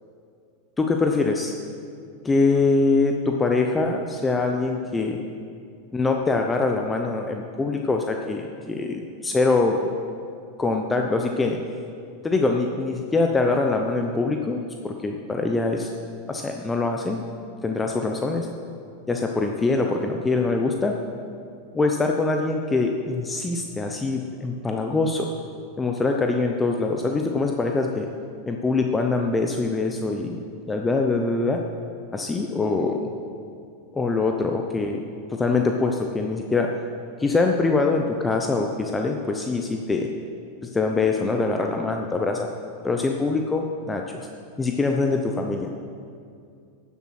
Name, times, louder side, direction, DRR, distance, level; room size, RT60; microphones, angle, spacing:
voice 1, 0.8-1.5 2.2-5.2 5.9-9.9 10.6-11.6 12.2-15.9 16.3-17.3 17.6-18.5 19.1-20.9 21.7-25.3 25.8-28.1 28.5-31.6 32.1-33.1 33.9-35.0 35.3-36.7 37.2-40.1 40.6-42.5 42.8-44.3 44.6-45.8, left 3 dB, 15° left, 2 dB, 0.8 m, -24 dB
12.5 x 7.3 x 6.0 m, 2.4 s
hypercardioid pair, 110°, 0 cm